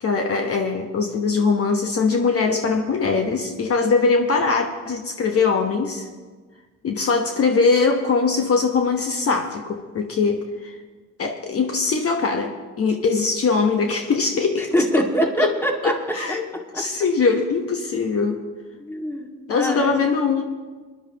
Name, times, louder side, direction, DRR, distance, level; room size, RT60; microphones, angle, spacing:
voice 1, 0.0-6.1 6.8-10.8 11.2-15.0 15.4-15.5 15.8-16.4 16.7-18.4 19.5-20.4, left 4 dB, 50° left, 3 dB, 1.1 m, -21 dB
voice 2, 14.6-16.0 16.5-16.8 18.8-20.0, equal, 10° left, 1 dB, 1.9 m, -24 dB
21.5 x 11.0 x 2.9 m, 1.4 s
cardioid pair, 90°, 30 cm